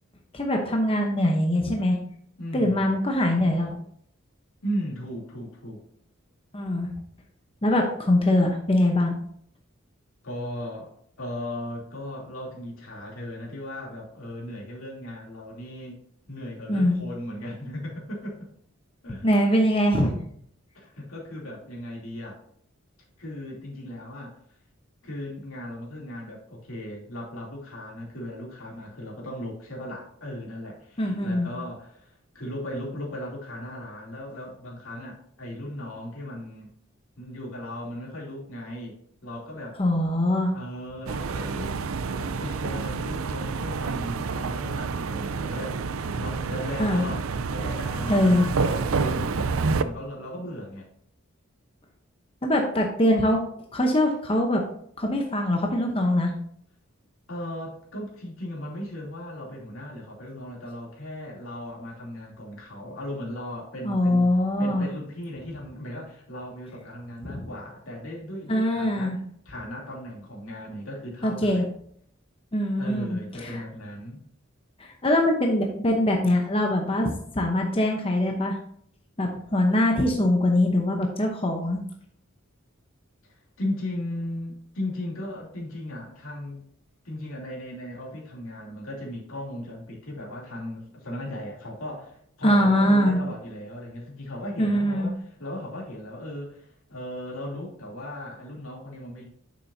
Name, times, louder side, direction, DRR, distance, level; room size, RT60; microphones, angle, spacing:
voice 1, 0.3-2.0 2.5-3.8 6.5-6.9 7.6-9.2 16.7-17.0 19.2-20.1 31.0-31.5 39.8-40.5 46.8-47.0 48.1-48.5 52.4-53.4 53.7-54.6 55.0-56.3 63.8-64.9 67.2-67.5 68.5-69.2 71.2-71.6 72.5-73.6 74.8-78.6 79.2-81.8 92.4-93.2 94.6-95.1, left 1 dB, 25° left, 1 dB, 0.8 m, -23 dB
voice 2, 2.4-3.0 4.6-5.8 10.2-16.0 16.3-18.4 19.0-19.3 20.7-22.4 23.2-24.4 25.0-36.7 37.2-39.8 40.1-40.2 40.5-41.8 42.1-47.2 47.5-50.9 57.3-64.3 64.6-69.2 69.4-71.7 72.8-74.2 83.3-86.7 87.0-99.3, left 1 dB, 80° left, -3 dB, 3.0 m, -37 dB
sound 1, 41.1-49.8, right 4 dB, 85° right, 0.5 m, -28 dB
9.1 x 7.0 x 2.7 m, 0.64 s
head